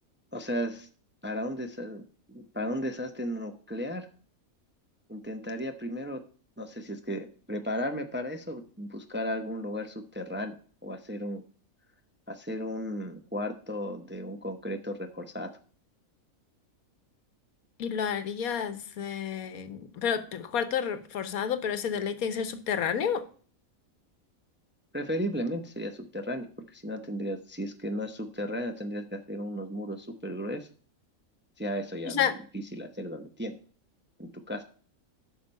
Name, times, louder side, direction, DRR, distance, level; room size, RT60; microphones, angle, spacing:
voice 1, 0.3-0.9 1.2-4.1 5.1-6.2 6.6-10.6 10.8-11.4 12.3-15.6 24.9-30.7 31.6-33.5 34.2-34.6, equal, 15° right, 0.5 m, -35 dB
voice 2, 17.8-23.2 32.0-32.3, left 8 dB, 90° left, 1.4 m, -30 dB
8.3 x 5.9 x 5.3 m
omnidirectional pair, 1.5 m